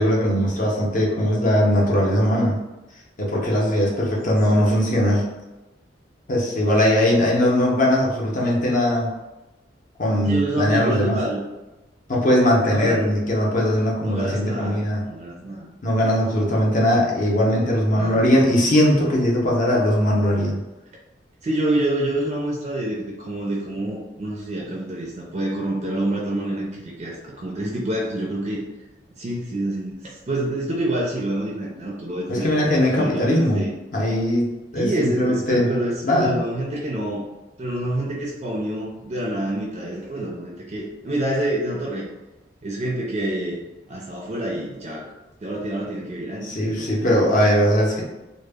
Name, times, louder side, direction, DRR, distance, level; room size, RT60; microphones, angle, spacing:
voice 1, 0.0-2.6 3.2-5.2 6.3-9.1 10.0-11.2 12.1-15.0 15.8-20.6 32.3-33.6 33.9-35.7 36.0-36.4 46.4-48.0, equal, 45° left, -3 dB, 0.6 m, -20 dB
voice 2, 10.3-11.4 12.7-13.2 14.0-15.7 16.0-16.1 17.9-18.3 21.4-28.6 29.2-33.7 34.7-37.2 37.6-42.1 42.6-43.6 43.9-45.1 45.4-46.9, right 1 dB, 35° right, -3 dB, 0.4 m, -27 dB
2.0 x 2.0 x 3.3 m, 1.1 s
head